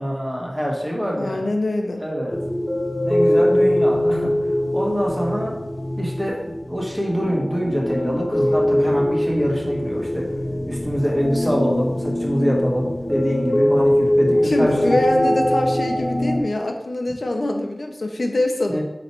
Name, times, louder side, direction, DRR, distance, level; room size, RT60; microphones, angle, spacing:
voice 1, 0.0-1.5 2.0-2.4 3.0-4.3 4.7-5.6 6.0-10.3 10.7-15.0 18.7-18.8, equal, 10° right, -3 dB, 1.7 m, -24 dB
voice 2, 1.1-2.0 14.4-18.8, left 1 dB, 80° left, 4 dB, 0.7 m, -24 dB
sound 1, 2.3-16.4, left 1 dB, 45° left, 1.0 m, -22 dB
6.6 x 3.2 x 4.7 m, 0.93 s
wide cardioid pair, 45°, 0 cm